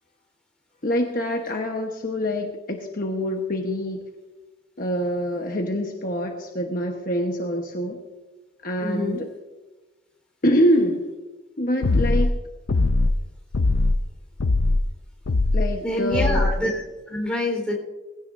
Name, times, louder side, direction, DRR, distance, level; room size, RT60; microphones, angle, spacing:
voice 1, 0.8-4.0 4.8-8.0 8.6-9.3 10.4-11.0 11.6-12.4 15.5-16.5, equal, 45° left, 1 dB, 1.2 m, -25 dB
voice 2, 8.8-9.2 15.8-17.7, left 1 dB, 5° left, -1 dB, 4.2 m, -27 dB
sound 1, 11.8-12.3 12.7-13.2 13.5-14.0 14.4-14.8 15.3-15.7 16.1-16.5, left 2 dB, 85° left, 0.6 m, -20 dB
20.5 x 16.5 x 2.7 m, 1.2 s
head